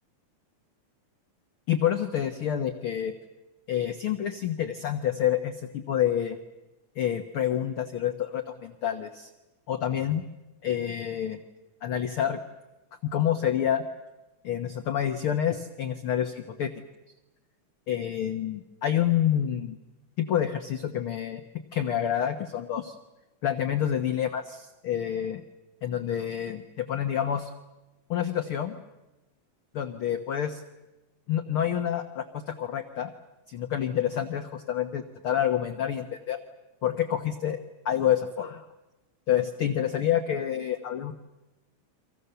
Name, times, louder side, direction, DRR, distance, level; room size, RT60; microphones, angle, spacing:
voice 1, 1.7-3.1 3.7-6.4 7.0-9.3 9.7-10.2 10.6-11.4 11.8-12.4 13.0-13.8 14.4-16.7 17.9-19.8 20.2-21.4 21.7-22.9 23.4-25.4 25.8-27.5 28.1-28.7 29.7-30.6 31.3-33.1 33.5-36.4 36.8-37.6 37.8-38.6 39.3-41.1, left 10 dB, 55° left, 7 dB, 1.6 m, -28 dB
30.0 x 25.5 x 6.9 m, 1.0 s
omnidirectional pair, 3.6 m